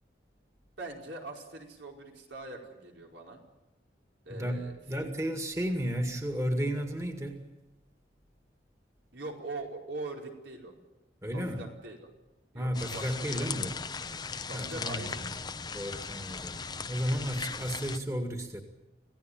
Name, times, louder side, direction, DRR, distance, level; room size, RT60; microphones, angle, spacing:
voice 1, 0.8-3.4 4.2-5.1 9.1-10.7 11.3-12.0 12.5-13.4 14.5-15.2, right 2 dB, 80° right, 0 dB, 5.0 m, -42 dB
voice 2, 4.4-7.4 11.2-11.6 12.5-13.7 14.5-15.3 15.7-18.6, equal, 15° right, 4 dB, 2.0 m, -33 dB
sound 1, 12.7-18.0, left 5 dB, 20° left, 0.8 m, -38 dB
27.5 x 17.0 x 9.0 m, 0.99 s
head